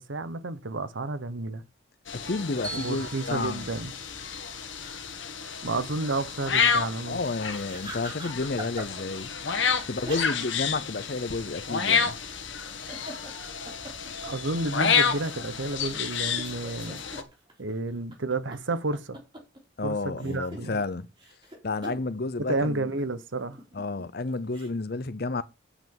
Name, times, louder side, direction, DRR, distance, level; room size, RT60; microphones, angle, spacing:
voice 1, 0.0-1.6 2.7-3.9 5.6-7.2 14.2-17.0 17.6-19.2 19.8-20.8 22.4-23.6, right 2 dB, 75° right, 1.0 m, -31 dB
sound 1, 2.1-17.2, left 6 dB, 75° left, 1.5 m, -30 dB
voice 2, 2.1-3.7 7.1-9.3 9.9-12.2 19.8-21.1 21.6-22.8 23.7-25.4, left 3 dB, 50° left, 0.7 m, -31 dB
Bell, 2.6-4.8, right 3 dB, 5° left, 2.2 m, -43 dB
sound 2, 7.5-9.2 10.0-10.7 10.9-11.0 12.6-14.7 15.2-15.3 15.8-19.6 20.0-22.1 23.1-24.7, right 1 dB, 25° right, 3.6 m, -43 dB
8.2 x 5.9 x 7.2 m
head